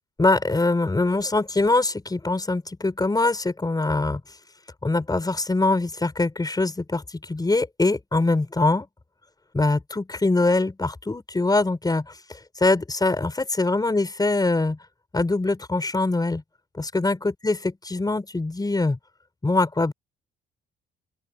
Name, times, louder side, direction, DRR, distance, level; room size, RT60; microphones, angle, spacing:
voice 1, 0.2-4.2 4.8-8.9 9.5-14.8 15.1-16.4 16.7-19.0 19.4-19.9, left 2 dB, 20° left, 5.1 m, -23 dB
open air
cardioid pair, 90°, 20 cm